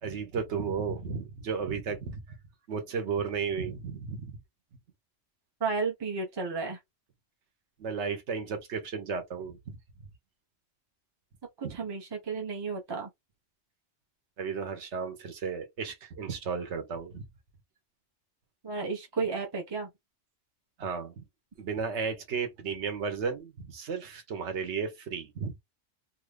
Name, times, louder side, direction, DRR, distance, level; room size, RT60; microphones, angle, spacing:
voice 1, 0.0-2.4 2.7-4.4 7.8-9.8 11.6-11.8 14.4-17.2 20.8-21.3 21.6-25.5, right 5 dB, 65° right, 1.2 m, -34 dB
voice 2, 5.6-6.8 11.6-13.1 18.6-19.9, right 4 dB, 30° right, 0.6 m, -32 dB
2.8 x 2.5 x 3.3 m
omnidirectional pair, 1.3 m